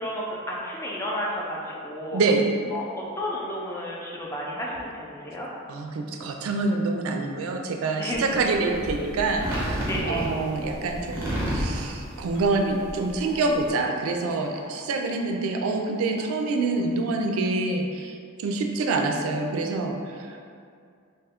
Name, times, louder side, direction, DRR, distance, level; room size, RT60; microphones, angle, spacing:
voice 1, 0.0-2.2 2.7-5.5 8.0-8.3 9.9-10.2 14.9-15.4, left 1 dB, 15° left, -4 dB, 0.3 m, -32 dB
voice 2, 2.1-2.5 5.7-18.1 18.4-20.4, right 3 dB, 85° right, 3 dB, 0.3 m, -26 dB
sound 1, 8.1-13.7, equal, 10° right, 0.8 m, -31 dB
sound 2, 12.4-12.5 13.3-13.4 14.6-14.7 16.2-16.4 17.5-17.6 18.8-18.9, left 1 dB, 80° left, 0.7 m, -46 dB
2.8 x 2.3 x 3.4 m, 2.3 s
head